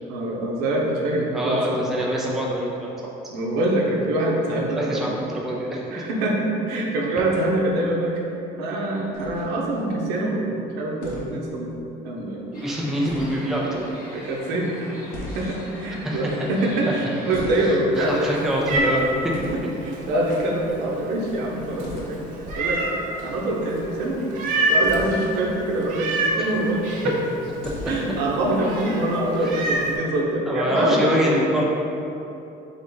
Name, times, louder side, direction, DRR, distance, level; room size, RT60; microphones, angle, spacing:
voice 1, 0.0-1.8 3.3-5.0 5.9-8.1 8.6-11.7 12.0-12.6 14.1-14.8 15.3-18.4 19.5-22.2 22.6-24.4 24.7-26.1 26.4-27.1 27.9-31.1, right 1 dB, 80° right, -1 dB, 0.8 m, -24 dB
voice 2, 1.3-2.9 4.6-5.9 12.5-13.9 16.0-16.2 18.0-19.0 26.4-26.5 30.5-31.6, equal, ahead, -4 dB, 0.3 m, -25 dB
sound 1, 9.1-9.8 11.0-11.4 13.0-13.5 15.1-15.8 17.3-18.0 19.3-19.7 21.8-22.1 24.8-25.3 27.6-28.2, left 2 dB, 65° left, 0.8 m, -36 dB
sound 2, 12.5-17.7, left 1 dB, 20° left, 0.9 m, -42 dB
Meow, 17.9-30.0, right 1 dB, 50° right, 0.6 m, -29 dB
3.6 x 3.6 x 3.9 m, 2.9 s
cardioid pair, 175°, 17 cm